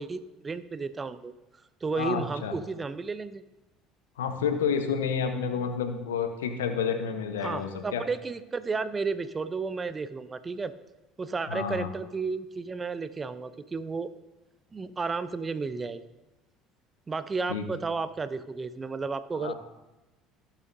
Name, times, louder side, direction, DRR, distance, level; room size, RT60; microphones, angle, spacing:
voice 1, 0.0-1.3 1.8-3.4 7.4-10.7 11.2-14.1 14.7-16.1 17.1-19.5, right 4 dB, 25° right, 14 dB, 0.6 m, -32 dB
voice 2, 2.0-2.5 4.2-8.0 11.5-11.9 17.5-17.6 19.4-19.5, left 6 dB, 80° left, 7 dB, 0.9 m, -29 dB
17.5 x 7.4 x 2.7 m, 1.0 s
hypercardioid pair, 65°, 0 cm